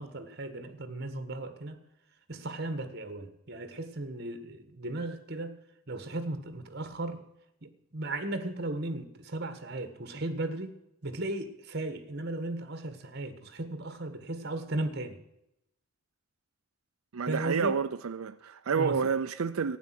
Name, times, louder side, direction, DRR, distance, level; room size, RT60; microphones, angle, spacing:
voice 1, 0.0-1.8 2.3-5.5 5.9-7.2 7.6-10.8 11.0-15.2 17.3-17.8 18.7-19.0, right 2 dB, 50° right, 1.6 m, -36 dB
voice 2, 17.1-19.8, right 6 dB, 85° right, 0.6 m, -29 dB
12.5 x 9.4 x 7.6 m
head